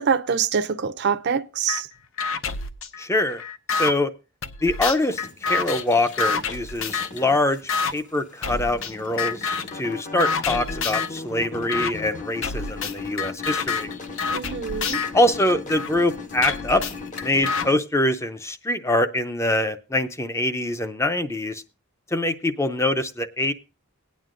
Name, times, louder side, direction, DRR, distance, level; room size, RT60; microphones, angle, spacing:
voice 1, 0.0-1.9 14.3-15.0, right 6 dB, 50° right, 0.5 m, -24 dB
sound 1, 1.7-1.8 2.2-3.9 4.4-7.2 7.7-7.9 8.4-8.9 9.2-9.8 10.2-11.2 11.7-11.9 12.4-15.9 16.4-17.7, left 5 dB, 60° left, 0.7 m, -28 dB
voice 2, 3.0-3.4 3.7-4.1 4.6-7.6 7.9-13.9 15.1-16.8 17.2-21.6 22.1-23.5, left 1 dB, 15° left, 0.5 m, -24 dB
sound 2, 5.1-17.7, left 3 dB, 35° left, 0.9 m, -38 dB
18.0 x 9.2 x 2.5 m
head